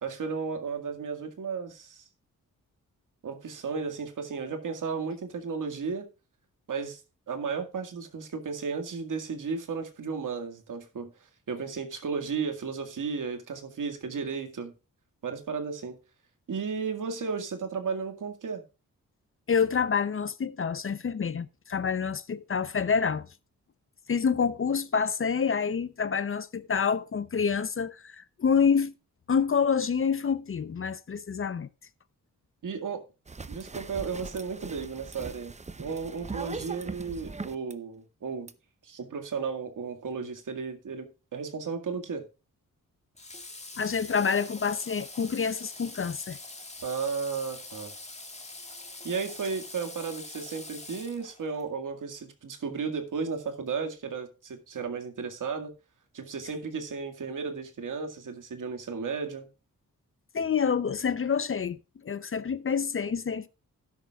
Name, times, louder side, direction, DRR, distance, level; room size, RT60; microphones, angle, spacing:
voice 1, 0.0-2.0 3.2-6.1 6.7-7.0 7.3-11.1 11.5-14.7 15.2-16.0 16.5-18.6 32.6-33.0 33.5-38.5 38.8-42.3 46.8-47.9 49.0-55.7 56.1-59.5, right 5 dB, 70° right, 2.0 m, -34 dB
voice 2, 19.5-23.3 24.1-28.9 29.3-31.7 43.8-46.4 60.3-63.5, left 6 dB, 40° left, 0.7 m, -27 dB
sound 1, 33.3-37.7 38.5-38.6, right 4 dB, 20° right, 0.7 m, -40 dB
Water / Water tap faucet, 43.2-51.7, left 2 dB, 20° left, 2.0 m, -44 dB
12.5 x 10.5 x 2.4 m
cardioid pair, 95°, 32 cm